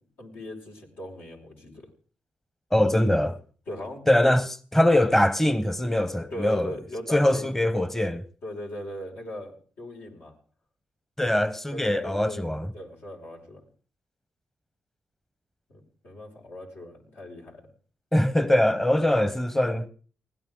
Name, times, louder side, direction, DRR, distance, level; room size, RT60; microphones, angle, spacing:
voice 1, 0.2-1.9 3.7-4.0 6.3-7.5 8.4-10.3 11.7-13.6 15.7-17.7, left 1 dB, 75° left, 5.8 m, -39 dB
voice 2, 2.7-3.4 4.1-6.7 7.1-8.2 11.2-12.7 18.1-19.9, left 1 dB, 10° left, 0.9 m, -22 dB
20.5 x 17.0 x 3.8 m
supercardioid pair, 60°, 4 cm